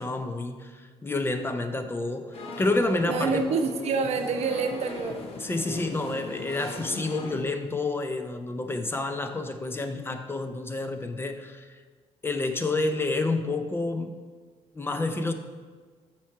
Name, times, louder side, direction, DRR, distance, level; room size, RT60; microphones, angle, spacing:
voice 1, 0.0-3.5 5.4-11.8 12.2-14.3 14.7-15.3, left 2 dB, 20° left, 7 dB, 0.5 m, -29 dB
sound 1, 2.3-7.4, left 3 dB, 50° left, 1.0 m, -39 dB
voice 2, 3.0-5.2, right 5 dB, 60° right, 6 dB, 0.7 m, -27 dB
7.3 x 4.5 x 4.7 m, 1.5 s
cardioid pair, 120°, 12 cm